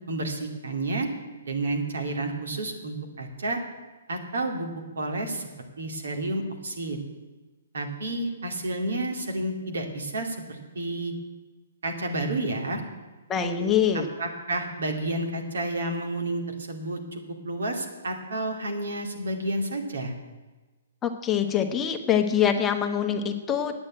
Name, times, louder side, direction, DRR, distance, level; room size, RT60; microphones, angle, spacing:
voice 1, 0.1-1.1 1.4-3.6 4.1-5.5 5.8-7.0 7.7-11.1 11.8-12.8 13.9-20.1, right 2 dB, 80° right, 2 dB, 2.4 m, -30 dB
voice 2, 13.3-14.1 21.0-23.7, left 8 dB, 15° left, 5 dB, 1.0 m, -24 dB
9.5 x 8.8 x 8.7 m, 1.2 s
hypercardioid pair, 150°, 0 cm